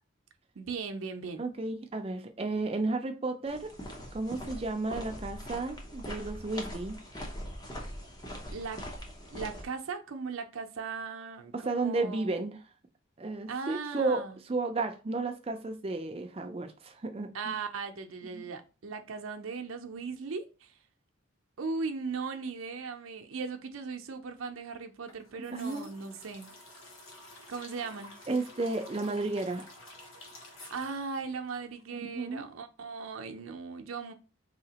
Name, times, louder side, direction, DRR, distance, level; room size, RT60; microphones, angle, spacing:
voice 1, 0.6-1.4 8.5-8.8 9.3-12.3 13.5-14.4 17.3-20.7 21.6-26.6 27.5-28.2 30.7-34.1, right 5 dB, 85° right, 0.6 m, -38 dB
voice 2, 1.4-3.7 4.1-7.0 11.5-12.6 13.2-14.2 14.5-17.5 18.3-18.5 25.5-25.9 28.3-29.7 31.9-32.5, right 3 dB, 30° right, 0.4 m, -33 dB
sound 1, 3.5-9.6, equal, 20° left, 0.6 m, -42 dB
sound 2, 25.1-32.1 32.3-32.4, left 1 dB, 85° left, 0.9 m, -51 dB
4.0 x 2.8 x 2.8 m
head